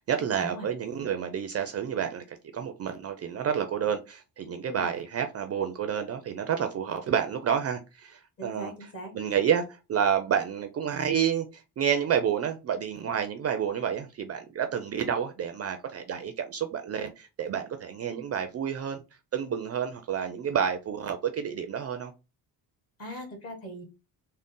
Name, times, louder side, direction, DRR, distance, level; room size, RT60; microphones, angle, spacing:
voice 1, 0.1-8.7 9.1-19.0 19.3-22.1, right 8 dB, 40° right, 0.4 m, -29 dB
voice 2, 8.4-9.1 23.0-23.8, right 1 dB, 35° left, 1.5 m, -40 dB
3.8 x 2.1 x 3.6 m
cardioid pair, 135°, 40 cm